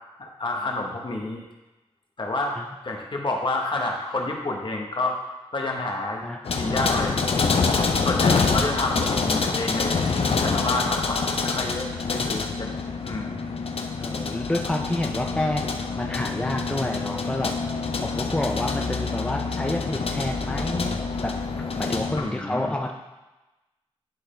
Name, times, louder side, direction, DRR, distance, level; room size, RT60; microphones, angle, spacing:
voice 1, 0.2-1.4 2.2-2.6 2.8-5.2 5.5-6.2 6.5-7.2 8.0-10.0 10.4-13.5 22.2-22.7, left 2 dB, 50° left, 0 dB, 1.1 m, -29 dB
voice 2, 6.2-7.1 11.5-12.7 14.0-17.5 18.0-21.3 21.8-22.9, left 1 dB, 10° left, 2 dB, 0.4 m, -30 dB
Rattling window on a city bus, 6.5-22.2, left 4 dB, 70° left, 0.6 m, -26 dB
10.5 x 3.9 x 3.3 m, 1.1 s
wide cardioid pair, 90°, 11 cm